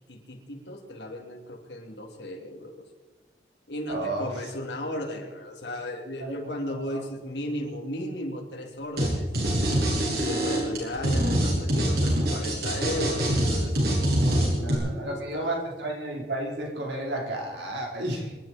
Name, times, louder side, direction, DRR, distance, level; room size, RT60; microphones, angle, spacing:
voice 1, 0.1-2.8 3.7-9.3 10.1-15.6, left 1 dB, 80° left, 2 dB, 3.2 m, -35 dB
voice 2, 3.9-4.3 6.2-7.0 14.2-18.4, right 1 dB, 85° right, 0 dB, 4.2 m, -33 dB
sound 1, 9.0-9.1 9.3-14.8, right 1 dB, 60° right, 7.0 m, -24 dB
26.0 x 11.5 x 4.5 m, 1.2 s
head